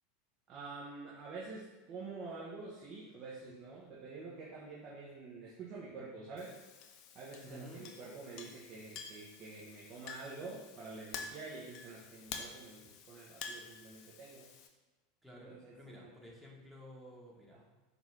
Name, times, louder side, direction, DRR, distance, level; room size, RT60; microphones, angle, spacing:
voice 1, 0.5-6.5 7.1-14.5 15.5-16.1, right 3 dB, 45° right, -6 dB, 0.9 m, -47 dB
Chink clink, 6.4-14.7, left 6 dB, 50° left, 0.5 m, -49 dB
voice 2, 7.4-7.9 15.2-17.6, equal, 5° right, -3 dB, 1.2 m, -53 dB
5.0 x 2.6 x 3.3 m, 1.2 s
hypercardioid pair, 85°, 0 cm